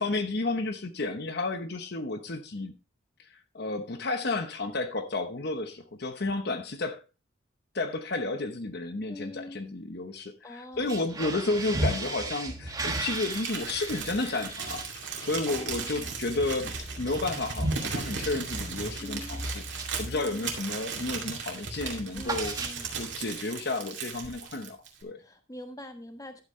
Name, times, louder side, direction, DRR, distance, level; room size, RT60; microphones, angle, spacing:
voice 1, 0.0-2.7 3.5-7.0 7.7-14.8 15.2-22.5 23.0-24.8 25.0-25.2, left 2 dB, 55° left, 0.9 m, -32 dB
voice 2, 9.1-9.6 10.4-11.0 15.5-15.9 19.0-19.5 20.1-20.5 22.1-22.9 25.2-26.4, left 1 dB, 20° left, 1.2 m, -44 dB
sound 1, 10.7-20.7 21.0-21.3 21.6-23.2, right 2 dB, 20° right, 1.4 m, -36 dB
Crumpling crinkling, 12.9-25.0, right 5 dB, 65° right, 2.4 m, -37 dB
12.0 x 8.1 x 3.2 m
head